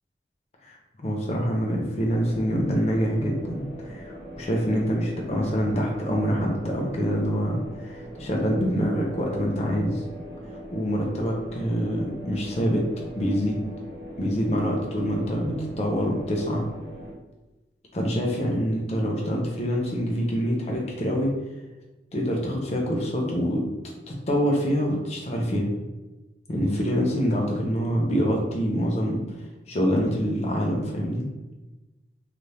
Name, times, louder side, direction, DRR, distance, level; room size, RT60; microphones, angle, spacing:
voice 1, 0.6-10.0 10.7-12.8 13.2-13.6 14.2-16.7 17.9-21.3 22.1-23.6 24.1-25.7 26.5-29.2 29.7-31.3, equal, 35° left, -1 dB, 0.5 m, -25 dB
sound 1, 2.1-17.1, equal, 20° left, 1.3 m, -41 dB
2.7 x 2.4 x 3.2 m, 1.1 s
head